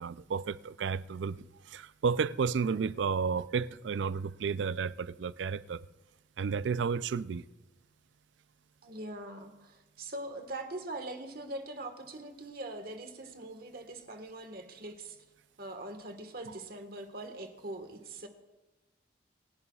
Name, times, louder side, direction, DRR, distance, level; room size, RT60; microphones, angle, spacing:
voice 1, 0.0-5.8 6.4-7.4 16.4-16.6, right 5 dB, 85° right, 0.4 m, -32 dB
voice 2, 8.8-15.2 15.6-18.3, right 2 dB, 55° right, 1.5 m, -42 dB
28.5 x 11.0 x 2.4 m
head